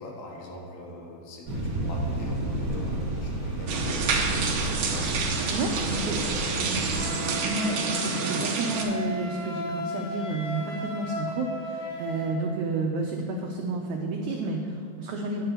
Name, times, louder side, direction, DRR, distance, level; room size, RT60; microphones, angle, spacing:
voice 1, 0.0-6.9, left 1 dB, 85° left, -1 dB, 3.2 m, -42 dB
sound 1, 1.5-7.0, right 1 dB, 45° right, 1.4 m, -31 dB
sound 2, 3.7-8.8, right 4 dB, 65° right, 1.9 m, -28 dB
voice 2, 5.5-6.2 7.4-15.4, right 2 dB, 90° right, 2 dB, 1.6 m, -30 dB
Wind instrument woodwind instrument, 6.9-12.4, left 1 dB, 10° right, 1.0 m, -36 dB
9.6 x 5.8 x 6.7 m, 2.6 s
omnidirectional pair, 4.1 m